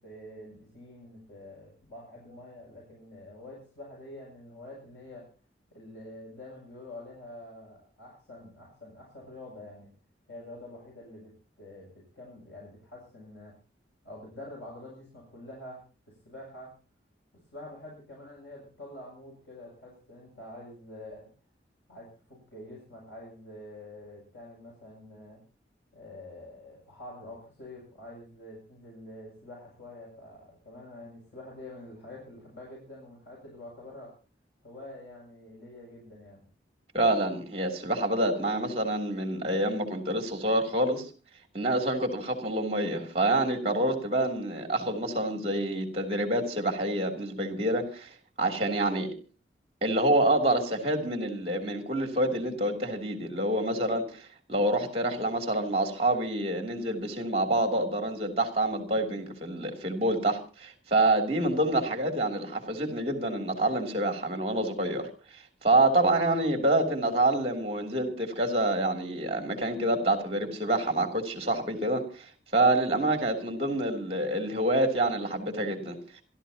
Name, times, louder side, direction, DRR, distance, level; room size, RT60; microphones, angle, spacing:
voice 1, 0.0-5.3 5.7-9.9 10.3-13.6 14.0-16.7 17.5-21.3 21.9-25.4 25.9-34.1 34.6-36.4, left 1 dB, 85° left, -3 dB, 7.7 m, -46 dB
voice 2, 36.9-41.1 41.5-48.1 48.4-49.1 49.8-54.2 54.5-65.1 65.6-72.3 72.5-76.0, right 1 dB, 35° right, 4 dB, 3.1 m, -27 dB
27.0 x 13.0 x 2.9 m, 0.37 s
head